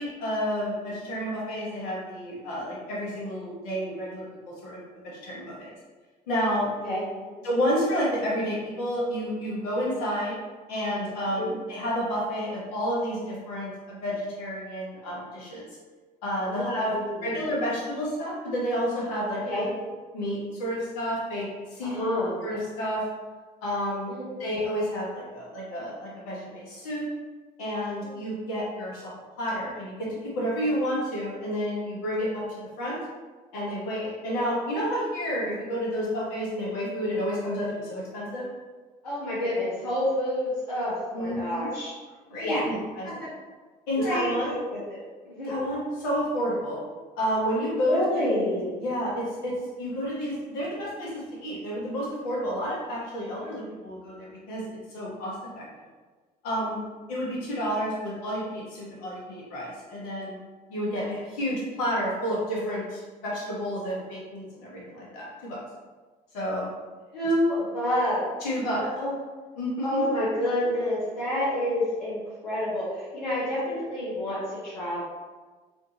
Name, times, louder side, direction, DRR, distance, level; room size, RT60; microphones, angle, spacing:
voice 1, 0.0-5.7 6.3-6.7 7.4-10.3 10.7-15.7 16.2-16.9 17.2-19.6 20.1-21.5 21.7-21.9 22.4-23.0 23.6-24.1 24.4-27.0 27.6-29.1 29.4-33.0 33.5-38.4 41.1-41.7 42.3-43.1 43.9-44.5 45.5-46.8 47.1-55.6 56.4-56.8 57.1-60.4 60.7-65.6 66.3-66.7 68.4-68.8 69.6-70.1, equal, 75° left, -5 dB, 1.1 m, -30 dB
voice 2, 6.8-7.3 11.4-11.5 16.5-17.3 19.5-19.7 21.8-22.4 24.1-24.5 39.0-41.9 42.4-42.7 43.0-43.3 44.0-45.0 45.2-45.5 47.9-48.8 67.1-68.3 68.7-69.1 69.8-75.0, left 1 dB, 90° left, -10 dB, 0.7 m, -28 dB
3.5 x 2.5 x 2.7 m, 1.4 s
hypercardioid pair, 55°, 20 cm